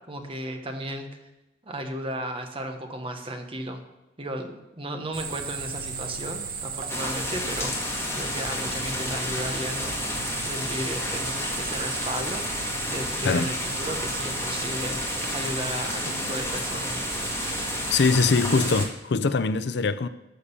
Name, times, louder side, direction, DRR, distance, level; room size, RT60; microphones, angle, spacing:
voice 1, 0.1-1.1 1.6-3.8 4.2-7.9 8.2-10.2 10.4-17.0, right 1 dB, 30° right, 1.3 m, -34 dB
sound 1, 5.1-18.9, right 6 dB, 50° right, 1.3 m, -35 dB
sound 2, 6.9-18.8, left 2 dB, 15° left, 1.7 m, -31 dB
voice 2, 17.9-20.1, left 4 dB, 65° left, 0.5 m, -22 dB
12.5 x 6.6 x 6.9 m
head